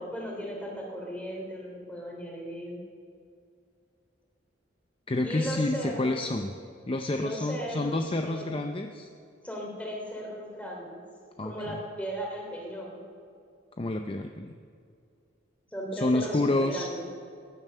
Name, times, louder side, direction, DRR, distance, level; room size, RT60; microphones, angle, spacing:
voice 1, 0.0-2.8 5.2-6.3 7.1-8.6 9.4-11.0 11.4-13.0 15.7-17.0, equal, 10° left, -1 dB, 3.1 m, -36 dB
voice 2, 5.1-6.5 6.9-9.1 11.4-11.8 13.8-14.5 15.9-16.9, left 2 dB, 30° left, 6 dB, 0.6 m, -29 dB
16.5 x 11.0 x 6.7 m, 2.4 s
head